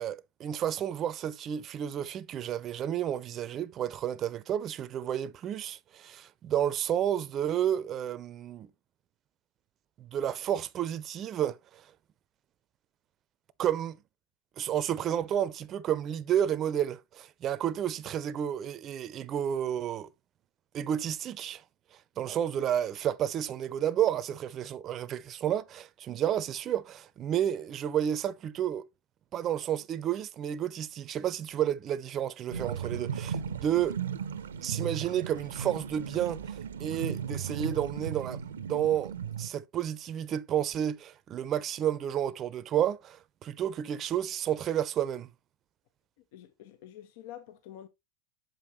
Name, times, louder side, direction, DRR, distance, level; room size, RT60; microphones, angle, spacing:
voice 1, 0.0-8.7 10.0-11.6 13.6-14.0 14.6-20.1 20.7-21.6 22.2-28.9 29.3-34.0 34.6-45.3, right 10 dB, 35° right, 0.6 m, -31 dB
sound 1, 32.5-39.5, right 7 dB, 90° right, 0.6 m, -36 dB
voice 2, 46.3-47.9, left 11 dB, 65° left, 0.8 m, -47 dB
7.4 x 5.3 x 3.1 m
hypercardioid pair, 105°, 0 cm